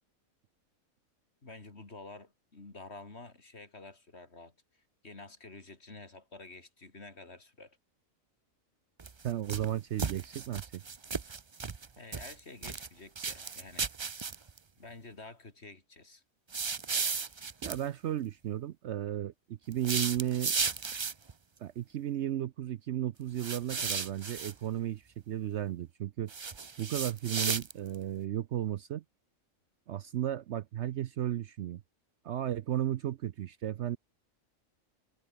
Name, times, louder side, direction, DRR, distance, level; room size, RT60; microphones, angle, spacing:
voice 1, 1.4-7.8 12.0-13.9 14.8-16.2, left 3 dB, 50° left, 3.4 m, -50 dB
sound 1, 9.0-9.7 10.0-11.9 12.1-12.9 13.2-14.6 16.5-17.8 19.7-21.3 23.4-24.5 26.3-28.0, right 5 dB, 35° right, 0.5 m, -34 dB
voice 2, 9.2-10.7 17.6-20.5 21.6-26.3 26.8-29.0 29.9-31.8 32.2-34.0, right 11 dB, 65° right, 0.8 m, -34 dB
omnidirectional pair, 1.4 m